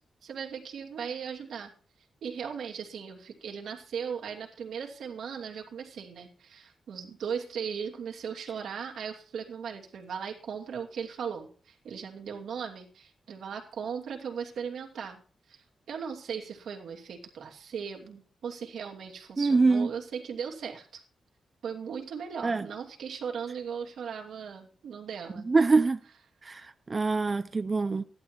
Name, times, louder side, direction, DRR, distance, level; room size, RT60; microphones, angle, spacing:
voice 1, 0.2-1.7 2.2-15.2 15.5-21.0 21.6-25.5, right 7 dB, 85° right, 2.8 m, -38 dB
voice 2, 19.4-19.9 22.4-22.7 25.4-26.0 26.4-28.0, right 3 dB, 30° right, 0.6 m, -24 dB
15.0 x 11.5 x 4.5 m
wide cardioid pair, 130°, 0 cm